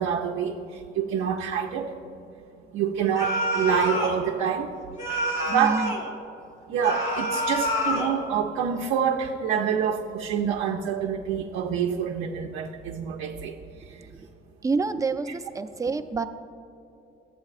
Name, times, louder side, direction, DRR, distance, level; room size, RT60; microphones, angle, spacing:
voice 1, 0.0-1.9 2.7-4.7 5.5-5.9 6.7-13.6 13.9-14.0 15.3-15.4, right 7 dB, 90° right, 1 dB, 0.5 m, -27 dB
sound 1, 3.2-4.2 5.0-6.1 6.8-8.2, equal, 90° left, 1.6 m, -27 dB
voice 2, 5.5-5.9 14.6-16.2, right 4 dB, 15° right, 7 dB, 0.4 m, -27 dB
14.0 x 8.2 x 2.4 m, 2.7 s
cardioid pair, 90°, 20 cm